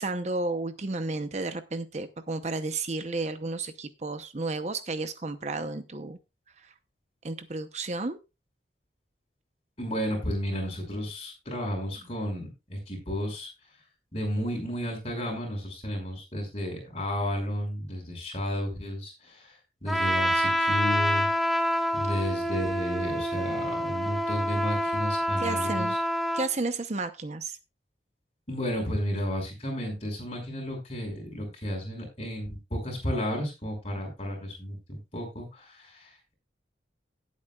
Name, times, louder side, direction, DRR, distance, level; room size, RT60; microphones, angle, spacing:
voice 1, 0.0-6.2 6.6-6.7 7.2-8.2 25.4-26.0 26.3-27.6, right 3 dB, 40° right, 10 dB, 0.8 m, -32 dB
voice 2, 9.8-13.5 14.1-19.5 19.8-21.3 21.9-25.9 28.5-36.3, equal, 35° left, 1 dB, 5.7 m, -32 dB
Trumpet, 19.9-26.5, equal, ahead, 1.3 m, -27 dB
17.5 x 8.4 x 2.4 m, 0.25 s
head